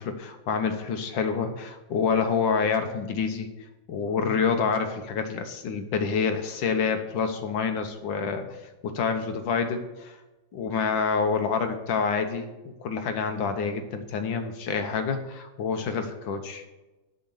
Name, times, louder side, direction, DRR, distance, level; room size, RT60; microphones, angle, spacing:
voice 1, 0.0-3.5 3.9-8.4 8.8-10.2 10.5-16.6, left 5 dB, 85° left, 7 dB, 1.8 m, -27 dB
8.0 x 6.7 x 7.7 m, 1.1 s
omnidirectional pair, 2.0 m